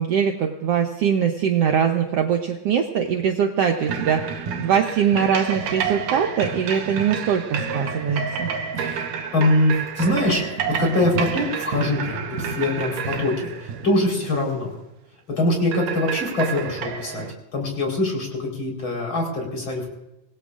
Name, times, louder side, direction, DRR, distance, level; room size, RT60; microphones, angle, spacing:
voice 1, 0.0-8.5, right 7 dB, 65° right, 3 dB, 1.6 m, -22 dB
sound 1, 3.8-14.6 15.7-17.3, right 6 dB, 90° right, 2.8 m, -29 dB
voice 2, 8.8-10.4 10.7-14.7 15.4-17.3 17.5-19.9, left 1 dB, 40° left, 0 dB, 4.9 m, -23 dB
26.0 x 19.0 x 2.5 m, 0.90 s
omnidirectional pair, 3.6 m